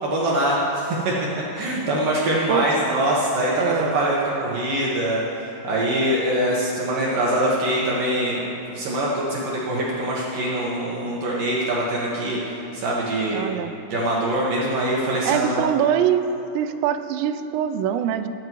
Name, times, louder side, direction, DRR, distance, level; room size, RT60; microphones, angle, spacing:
voice 1, 0.0-1.1 1.5-5.2 5.6-13.5 13.9-15.7, right 1 dB, 65° right, -5 dB, 2.5 m, -23 dB
voice 2, 3.6-4.0 13.3-13.7 15.2-16.3 16.5-18.3, right 10 dB, 85° right, 9 dB, 2.8 m, -23 dB
22.0 x 9.5 x 3.0 m, 2.9 s
omnidirectional pair, 5.0 m